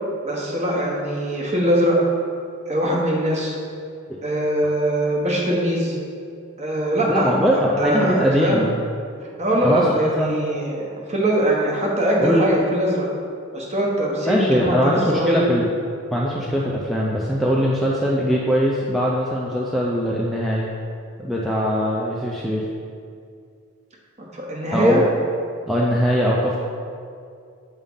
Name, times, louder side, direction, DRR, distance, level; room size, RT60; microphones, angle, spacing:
voice 1, 0.2-2.0 2.7-3.6 4.2-6.0 6.6-8.6 9.4-13.1 13.5-15.4 24.3-25.0, right 1 dB, 30° right, -2 dB, 1.0 m, -22 dB
voice 2, 7.1-8.7 9.6-10.4 12.2-12.5 14.3-15.7 16.1-20.7 21.2-22.7 24.7-25.1 25.7-26.6, equal, ahead, -5 dB, 0.4 m, -21 dB
7.2 x 3.7 x 5.4 m, 2.3 s
head